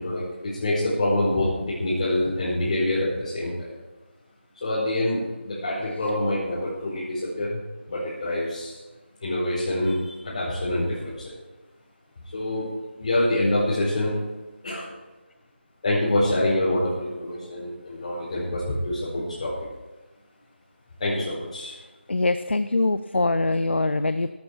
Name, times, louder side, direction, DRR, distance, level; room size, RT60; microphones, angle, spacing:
voice 1, 0.0-1.5 1.8-3.7 4.6-8.8 9.2-11.3 12.3-12.7 13.0-14.1 14.6-14.9 15.8-19.5 21.0-21.7, left 1 dB, 35° left, -9 dB, 4.6 m, -26 dB
voice 2, 22.1-24.3, left 2 dB, 70° left, 12 dB, 0.6 m, -23 dB
14.0 x 11.5 x 4.5 m, 1.1 s
figure-of-eight pair, 160°, 6 cm